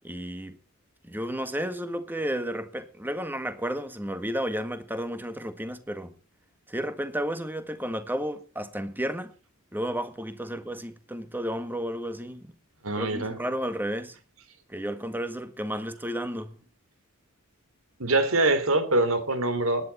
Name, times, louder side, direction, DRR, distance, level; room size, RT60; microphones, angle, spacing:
voice 1, 0.0-0.6 1.0-6.1 6.7-9.3 9.7-12.5 13.0-14.2 14.7-16.6, equal, 10° right, 1.7 m, -32 dB
voice 2, 12.8-13.4 18.0-19.9, right 2 dB, 70° right, 3.3 m, -24 dB
18.5 x 10.5 x 4.2 m
head